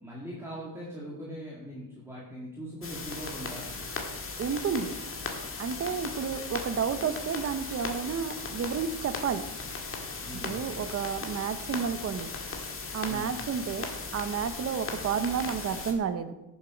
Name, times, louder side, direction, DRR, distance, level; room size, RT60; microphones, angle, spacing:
voice 1, 0.0-3.7 10.2-10.7 13.1-13.3, equal, 5° right, -6 dB, 2.2 m, -41 dB
sound 1, 2.8-15.9, left 3 dB, 35° left, 1.7 m, -37 dB
voice 2, 4.4-4.9 5.6-9.4 10.4-12.3 12.9-16.5, right 7 dB, 40° right, 11 dB, 0.7 m, -31 dB
16.5 x 7.3 x 5.0 m, 1.0 s
wide cardioid pair, 175°, 39 cm